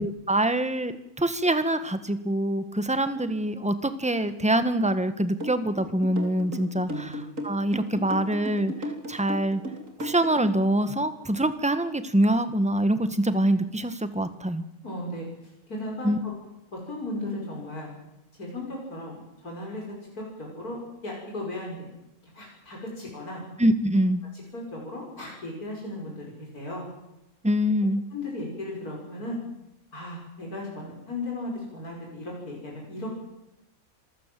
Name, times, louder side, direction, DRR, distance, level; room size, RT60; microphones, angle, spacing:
voice 1, 0.0-9.6 10.0-14.6 16.0-16.2 23.6-24.2 27.4-28.0, right 1 dB, 5° right, 11 dB, 1.4 m, -25 dB
sound 1, 5.4-10.7, equal, 60° right, 3.5 m, -35 dB
voice 2, 6.8-7.2 14.8-15.3 15.7-16.3 16.7-17.9 18.4-19.8 20.1-20.8 21.0-21.9 22.3-23.5 24.3-26.9 28.1-29.4 29.9-33.1, left 1 dB, 85° left, -2 dB, 6.1 m, -36 dB
26.0 x 15.5 x 7.7 m, 0.90 s
omnidirectional pair, 1.5 m